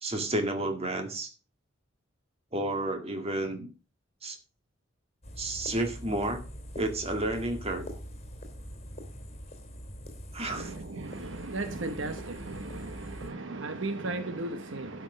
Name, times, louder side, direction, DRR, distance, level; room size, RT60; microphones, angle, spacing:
voice 1, 0.0-1.3 2.5-3.7 4.2-4.4 5.4-6.4 6.8-7.9 10.3-10.7, right 1 dB, 30° right, 2.0 m, -31 dB
sound 1, 5.2-13.3, equal, 30° left, 2.8 m, -43 dB
voice 2, 10.5-15.0, right 2 dB, 65° right, 1.0 m, -36 dB
12.0 x 6.1 x 6.2 m
head